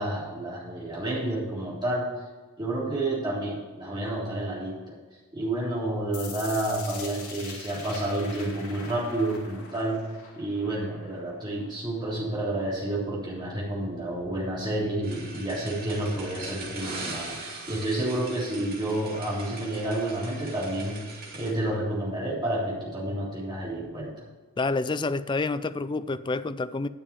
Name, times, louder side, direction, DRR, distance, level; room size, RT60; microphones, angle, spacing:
voice 1, 0.0-2.1 2.6-4.9 5.3-10.0 10.4-24.1, right 1 dB, 20° right, 3.5 m, -30 dB
sound 1, 6.1-12.1, left 5 dB, 75° left, 2.1 m, -43 dB
sound 2, 15.0-21.5, right 3 dB, 45° right, 2.5 m, -41 dB
voice 2, 24.6-26.9, left 3 dB, 20° left, 0.3 m, -28 dB
10.0 x 6.8 x 6.9 m
head